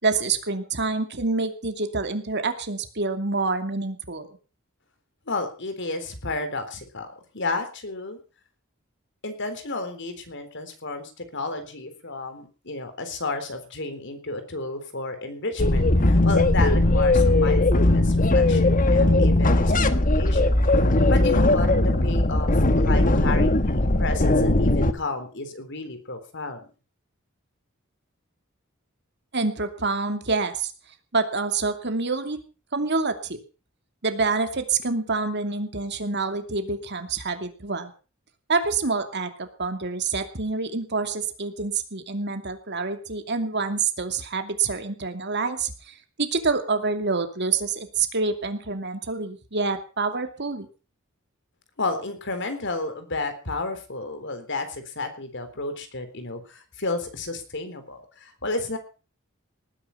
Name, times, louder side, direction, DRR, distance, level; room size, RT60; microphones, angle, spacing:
voice 1, 0.0-4.4 29.3-30.7 31.1-32.4 32.7-33.4 34.0-37.9 38.5-50.7, right 4 dB, 55° right, 7 dB, 2.6 m, -27 dB
voice 2, 5.3-8.2 9.2-26.7 51.8-58.8, left 3 dB, 60° left, 8 dB, 3.8 m, -32 dB
sound 1, 15.6-24.9, left 2 dB, 40° left, 1.4 m, -19 dB
19.0 x 10.0 x 5.7 m, 0.36 s
head